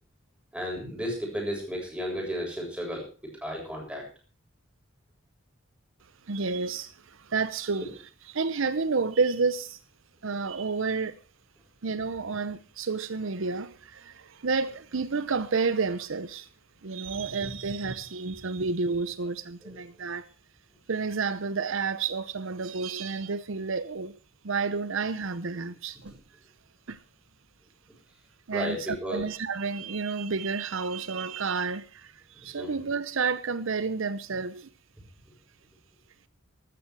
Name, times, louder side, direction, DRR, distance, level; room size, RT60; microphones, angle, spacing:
voice 1, 0.5-3.1 3.4-4.1 19.6-19.8 28.5-29.2 32.6-32.7, equal, 5° right, 7.5 m, -33 dB
voice 2, 6.3-7.9 8.3-9.8 10.2-11.1 11.8-16.5 16.8-20.3 20.9-24.1 24.4-26.1 26.9-27.0 28.5-34.7, right 4 dB, 65° right, 0.8 m, -30 dB
14.5 x 13.0 x 4.7 m
head